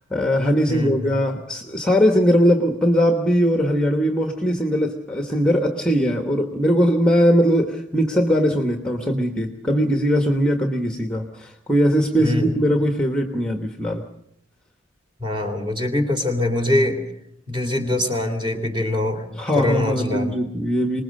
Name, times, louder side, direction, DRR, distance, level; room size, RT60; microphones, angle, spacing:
voice 1, 0.0-14.0 19.3-21.0, equal, 5° left, 5 dB, 1.2 m, -20 dB
voice 2, 0.7-1.2 12.2-12.5 15.2-17.0 17.5-19.2 19.5-20.4, left 1 dB, 25° right, 5 dB, 3.3 m, -23 dB
25.0 x 20.0 x 6.6 m, 0.74 s
head